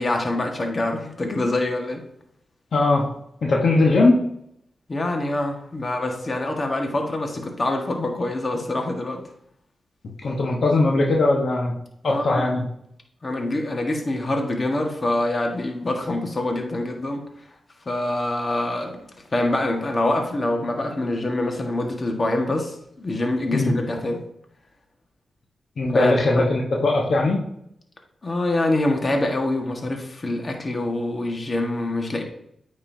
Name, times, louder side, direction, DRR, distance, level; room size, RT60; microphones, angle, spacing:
voice 1, 0.0-2.0 4.9-9.2 12.0-12.5 13.2-17.2 17.8-24.2 25.9-26.4 28.2-32.2, left 2 dB, 40° left, 2 dB, 1.5 m, -25 dB
voice 2, 2.7-3.1 3.4-4.2 10.2-11.7 12.0-12.6 23.5-23.7 25.8-27.4, left 2 dB, 65° left, -1 dB, 1.1 m, -19 dB
9.0 x 5.5 x 2.7 m, 0.74 s
cardioid pair, 65°, 0 cm